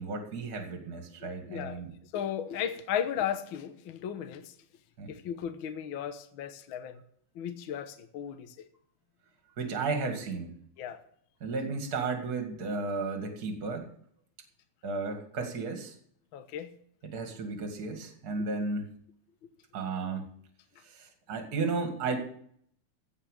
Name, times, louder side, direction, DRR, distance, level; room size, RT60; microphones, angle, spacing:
voice 1, 0.0-1.9 5.0-5.1 9.6-10.5 11.4-13.9 14.8-15.9 17.0-18.9 19.7-20.3 20.9-22.2, right 4 dB, 35° right, 5 dB, 2.2 m, -34 dB
voice 2, 1.5-1.8 2.1-4.5 5.1-7.0 7.3-8.5 10.8-11.0 16.3-16.7, left 9 dB, 65° left, 8 dB, 1.3 m, -35 dB
16.0 x 5.7 x 8.2 m, 0.63 s
omnidirectional pair, 3.5 m